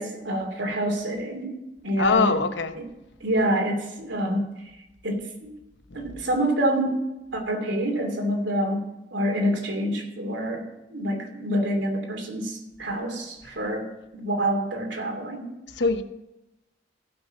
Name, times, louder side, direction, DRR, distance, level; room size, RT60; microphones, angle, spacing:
voice 1, 0.0-1.5 1.8-2.4 2.7-2.8 3.2-4.7 5.0-5.5 5.9-8.8 9.1-13.9 14.1-15.5, right 1 dB, 75° right, 2.8 m, -27 dB
voice 2, 2.0-2.7 15.8-16.0, left 4 dB, 75° left, 0.9 m, -22 dB
16.0 x 6.0 x 5.9 m
head